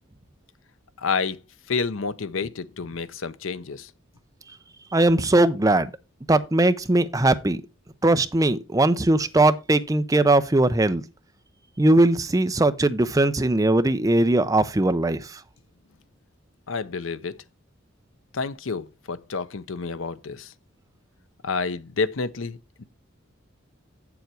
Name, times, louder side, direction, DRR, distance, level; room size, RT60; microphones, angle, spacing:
voice 1, 1.0-1.4 1.7-3.9 16.7-17.3 18.3-20.5 21.4-22.8, left 4 dB, 80° left, 0.7 m, -29 dB
voice 2, 4.9-5.9 6.3-7.6 8.0-11.0 11.8-15.4, right 2 dB, 15° right, 0.6 m, -20 dB
7.9 x 7.1 x 4.5 m
head